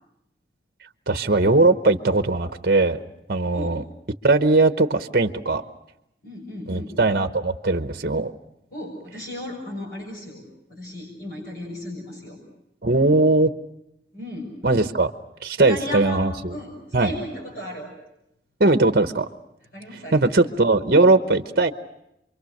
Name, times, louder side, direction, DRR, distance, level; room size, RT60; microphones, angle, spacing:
voice 1, 1.1-3.0 3.3-3.8 4.2-5.6 6.7-8.3 12.8-13.5 14.6-15.1 15.4-16.3 16.9-17.1 18.6-19.3 20.1-21.7, right 2 dB, 55° right, 9 dB, 0.9 m, -19 dB
voice 2, 6.2-6.9 8.7-10.4 10.7-12.4 14.1-14.6 15.7-16.2 16.5-17.9 19.7-20.3, left 1 dB, 55° left, -2 dB, 6.4 m, -35 dB
28.0 x 23.5 x 6.6 m, 0.82 s
head